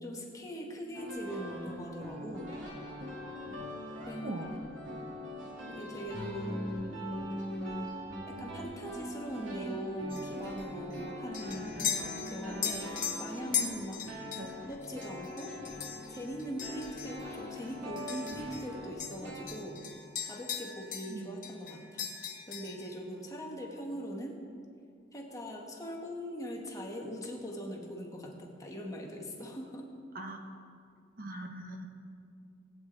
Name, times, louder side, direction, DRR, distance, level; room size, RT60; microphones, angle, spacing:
voice 1, 0.0-2.5 4.0-4.4 5.7-8.0 8.3-11.9 12.3-14.0 14.7-15.5 16.1-19.8 20.2-22.1 22.5-24.4 25.1-29.9, equal, 20° left, 0 dB, 1.4 m, -41 dB
sound 1, 0.9-19.4, equal, 85° right, 2.7 m, -42 dB
voice 2, 4.1-4.6 14.3-14.5 21.1-21.4 30.1-30.4 31.2-31.9, right 1 dB, 50° right, 3 dB, 1.1 m, -41 dB
sound 2, 10.1-18.7 19.0-21.2 21.4-22.9, left 8 dB, 45° left, 1.4 m, -39 dB
19.0 x 8.7 x 3.9 m, 2.3 s
head